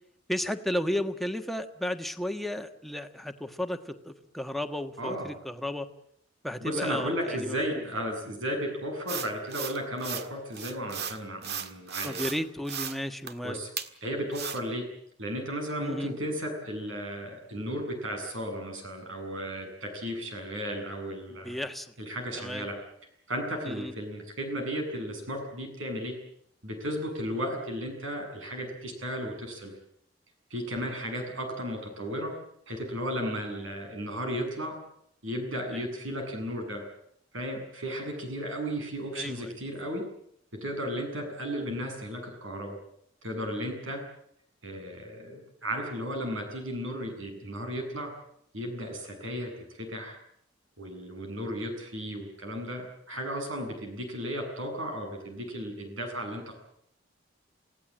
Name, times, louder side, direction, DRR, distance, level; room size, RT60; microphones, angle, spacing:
voice 1, 0.3-5.9 6.4-7.8 12.0-13.6 15.8-16.1 21.4-21.9 22.3-22.7 23.6-23.9 35.7-35.8 39.2-39.5, left 1 dB, ahead, 6 dB, 1.4 m, -33 dB
voice 2, 5.0-5.3 6.6-12.2 13.4-13.7 14.0-14.8 15.2-21.6 22.0-22.7 23.3-26.2 26.6-29.7 30.5-32.3 32.7-34.8 35.2-36.9 37.3-40.0 40.6-42.8 43.2-44.0 44.6-48.1 48.5-50.2 50.8-56.5, equal, 80° right, 4 dB, 7.9 m, -34 dB
sound 1, 9.1-10.3 10.5-12.4 12.6-13.0 13.3-13.4 13.8-13.9 14.3-14.6, right 7 dB, 55° right, 1.7 m, -36 dB
28.5 x 17.0 x 8.8 m, 0.72 s
head